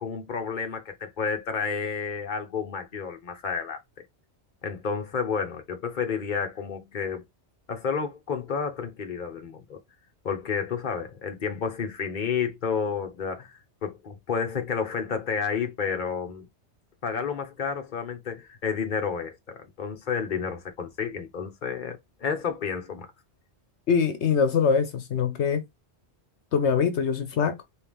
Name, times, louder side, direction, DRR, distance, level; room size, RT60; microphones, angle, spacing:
voice 1, 0.0-3.8 4.6-7.2 7.7-9.8 10.2-16.5 17.0-23.1, left 6 dB, 45° left, 1.1 m, -31 dB
voice 2, 23.9-25.6 26.5-27.5, left 6 dB, 75° left, 1.1 m, -23 dB
4.5 x 3.2 x 3.5 m
omnidirectional pair, 1.2 m